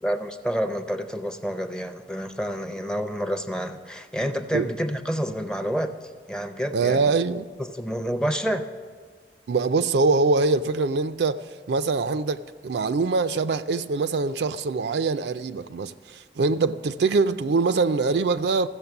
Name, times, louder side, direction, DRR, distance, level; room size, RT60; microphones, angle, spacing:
voice 1, 0.0-7.1 7.6-8.7, equal, 5° left, 0.5 m, -29 dB
voice 2, 6.7-7.5 9.5-18.7, right 4 dB, 70° right, 0.4 m, -23 dB
15.0 x 7.1 x 7.0 m
head